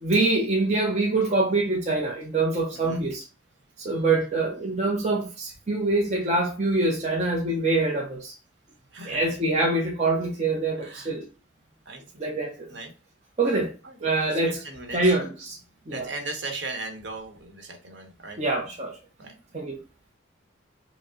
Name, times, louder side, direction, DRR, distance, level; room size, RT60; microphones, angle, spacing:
voice 1, 0.0-3.2 3.8-8.3 9.0-11.3 12.2-12.7 13.4-13.7 14.0-14.6 14.9-15.6 15.9-16.1 18.4-19.0 19.5-19.8, right 2 dB, 35° right, 0.6 m, -25 dB
voice 2, 2.7-3.1 8.9-9.4 10.8-11.1 11.9-12.2 12.7-12.9 13.4-15.2 15.9-18.4 19.2-19.3, right 2 dB, 65° right, 1.0 m, -38 dB
5.0 x 2.0 x 3.7 m
head